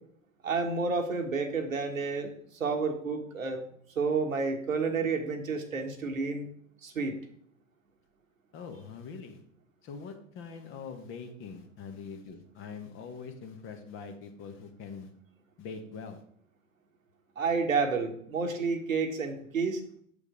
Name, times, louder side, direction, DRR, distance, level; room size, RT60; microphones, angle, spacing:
voice 1, 0.4-3.6 3.9-6.4 6.8-7.2 17.4-19.8, right 4 dB, 80° right, 4 dB, 1.4 m, -30 dB
voice 2, 8.5-9.4 9.8-15.1 15.6-16.2, left 5 dB, 30° left, 6 dB, 1.2 m, -43 dB
7.1 x 5.2 x 4.9 m, 0.63 s
figure-of-eight pair, 95°, 39 cm